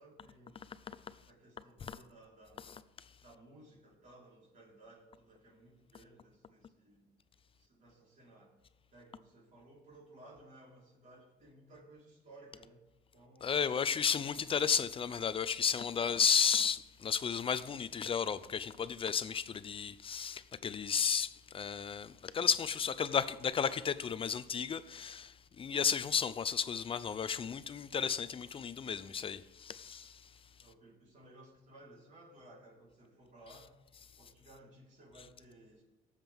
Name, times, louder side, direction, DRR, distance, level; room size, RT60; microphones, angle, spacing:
voice 1, 0.0-2.8 3.2-7.1 7.5-8.5 8.9-13.8 14.3-14.4 30.6-33.8 34.2-35.8, right 1 dB, 50° right, 4.2 m, -58 dB
voice 2, 13.4-30.3, left 7 dB, 30° left, 0.6 m, -33 dB
17.5 x 7.4 x 3.6 m
cardioid pair, 110°, 17 cm